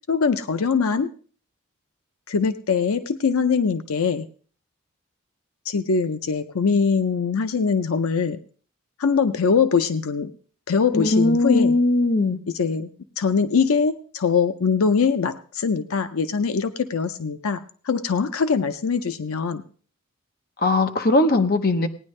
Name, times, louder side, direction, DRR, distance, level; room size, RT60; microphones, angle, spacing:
voice 1, 0.1-1.1 2.3-4.3 5.7-8.4 9.0-10.3 10.7-11.8 12.5-12.9 13.2-19.6, left 5 dB, 75° left, 10 dB, 0.6 m, -22 dB
voice 2, 10.9-12.4 20.6-21.9, left 2 dB, 45° left, 6 dB, 0.8 m, -19 dB
17.5 x 9.8 x 3.2 m, 0.43 s
head